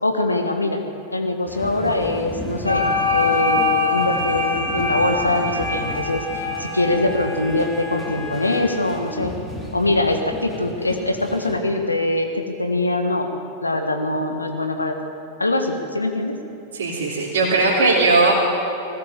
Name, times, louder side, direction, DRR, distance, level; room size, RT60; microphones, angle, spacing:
voice 1, 0.0-0.8 1.1-9.3 9.7-13.3 13.6-15.0 15.4-16.3, left 2 dB, 80° left, 5 dB, 1.6 m, -23 dB
sound 1, 1.5-11.6, left 1 dB, 5° left, 3.6 m, -34 dB
sound 2, 2.7-7.8, left 3 dB, 90° right, 3.1 m, -23 dB
voice 2, 16.7-18.3, right 3 dB, 65° right, -6 dB, 3.1 m, -18 dB
19.5 x 17.5 x 7.6 m, 2.6 s
figure-of-eight pair, 90°, 0 cm